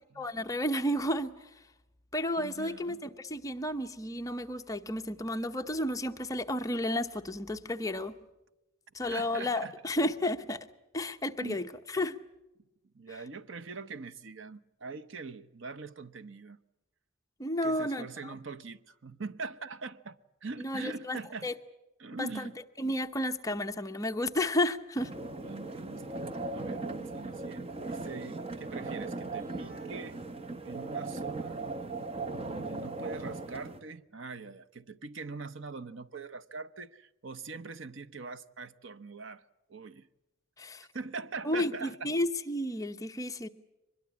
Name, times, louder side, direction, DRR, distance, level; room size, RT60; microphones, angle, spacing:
voice 1, 0.2-1.3 2.1-8.1 8.9-10.6 10.9-11.7 11.9-12.2 13.1-13.2 17.4-18.3 20.6-21.5 22.2-22.5 22.8-25.1 40.6-40.9 41.4-43.5, left 1 dB, 15° left, 0.8 m, -32 dB
voice 2, 2.4-3.0 9.0-9.7 11.4-11.7 12.9-16.6 17.6-21.5 22.0-22.5 25.4-26.3 26.5-30.2 30.6-31.7 32.5-39.4 39.7-40.1 40.9-42.1, right 4 dB, 65° right, 0.8 m, -42 dB
sound 1, 25.0-33.8, right 3 dB, 30° right, 0.9 m, -38 dB
sound 2, 29.4-31.2, right 1 dB, 45° right, 2.8 m, -55 dB
23.5 x 21.5 x 8.5 m
head